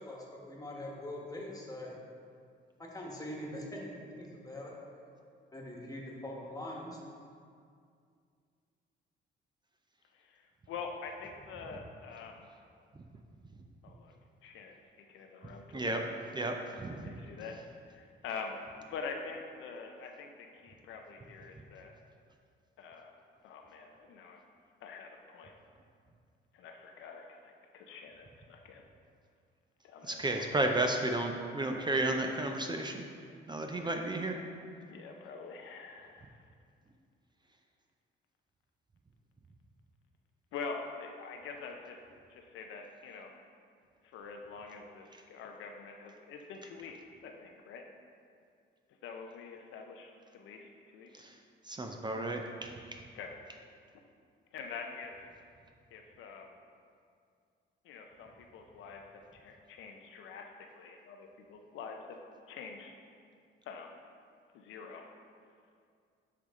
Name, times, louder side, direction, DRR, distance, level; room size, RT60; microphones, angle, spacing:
voice 1, 0.0-1.9 2.8-4.7 5.5-7.0, left 1 dB, 20° left, -2 dB, 1.3 m, -43 dB
voice 2, 10.1-12.5 13.8-14.1 14.4-16.2 17.0-18.6 18.9-22.0 22.8-23.1 23.4-24.4 24.8-25.6 26.5-28.8 29.8-30.3 33.8-33.9 34.9-36.3 40.5-42.0 42.3-43.3 44.0-47.8 49.0-51.1 53.1-53.3 54.5-55.3 55.9-56.5 57.8-59.0 59.3-62.2 62.5-62.9 63.7-64.0 64.5-65.0, left 5 dB, 85° left, 3 dB, 0.6 m, -45 dB
voice 3, 16.3-17.1 30.0-33.1 33.5-34.4 51.2-51.3 51.7-53.0, right 2 dB, 20° right, 3 dB, 0.5 m, -33 dB
10.0 x 3.4 x 3.6 m, 2.3 s
cardioid pair, 90°, 20 cm